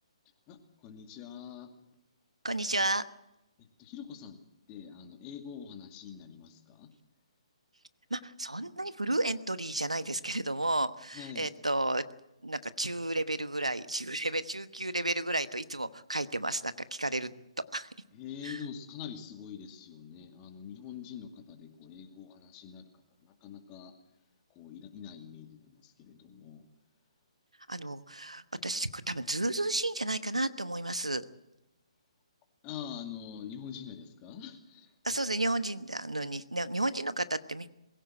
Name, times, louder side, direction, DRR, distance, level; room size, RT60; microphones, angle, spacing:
voice 1, 0.5-1.7 3.6-6.9 11.1-11.5 18.1-22.9 23.2-23.9 24.5-26.7 32.6-34.9, left 8 dB, 25° left, 6 dB, 2.4 m, -45 dB
voice 2, 2.4-3.0 8.1-12.0 12.4-17.3 17.7-17.9 18.4-18.6 27.7-31.2 35.0-37.7, right 2 dB, 85° right, 13 dB, 1.1 m, -32 dB
22.5 x 16.5 x 7.7 m, 0.88 s
figure-of-eight pair, 135°, 3 cm